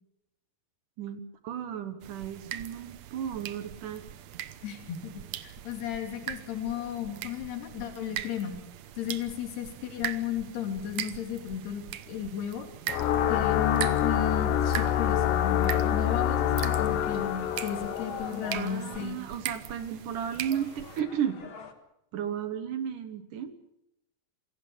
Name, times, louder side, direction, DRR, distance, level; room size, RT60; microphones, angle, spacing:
voice 1, 1.0-4.0 18.5-21.4 22.1-23.6, right 9 dB, 65° right, 11 dB, 2.4 m, -34 dB
sound 1, 2.0-21.0, right 11 dB, 85° right, 1.5 m, -40 dB
voice 2, 4.6-8.6 9.0-12.7 13.3-19.2, left 9 dB, 85° left, 4 dB, 5.1 m, -34 dB
sound 2, 12.9-18.9, left 10 dB, 65° left, 2.6 m, -27 dB
sound 3, 14.2-21.7, left 6 dB, 45° left, 1.7 m, -46 dB
27.5 x 17.0 x 7.3 m, 0.83 s
omnidirectional pair, 4.5 m